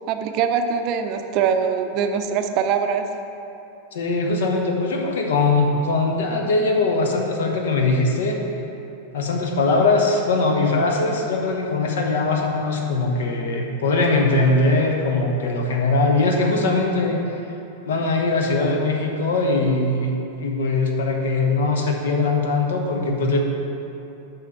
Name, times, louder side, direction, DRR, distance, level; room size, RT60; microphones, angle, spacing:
voice 1, 0.1-3.1, right 7 dB, 40° right, 6 dB, 0.5 m, -22 dB
voice 2, 3.9-8.4 9.1-17.2 17.8-20.1 20.4-23.4, left 3 dB, 60° left, 1 dB, 1.0 m, -21 dB
7.2 x 5.7 x 5.6 m, 2.9 s
figure-of-eight pair, 90°, 0 cm